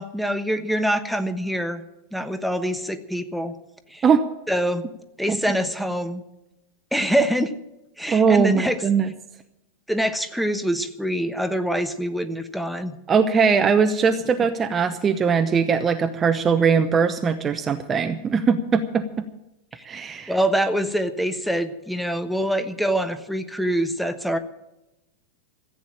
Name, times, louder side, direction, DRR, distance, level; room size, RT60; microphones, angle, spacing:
voice 1, 0.0-1.8 2.1-3.6 3.9-4.0 4.5-4.9 5.2-6.2 6.9-7.5 8.0-8.8 9.9-13.0 19.7-19.9 20.3-24.4, equal, ahead, 8 dB, 1.1 m, -25 dB
voice 2, 8.1-9.1 13.1-19.0 19.9-20.3, right 5 dB, 20° right, 8 dB, 0.8 m, -20 dB
14.5 x 8.8 x 8.9 m, 0.90 s
figure-of-eight pair, 90°, 0 cm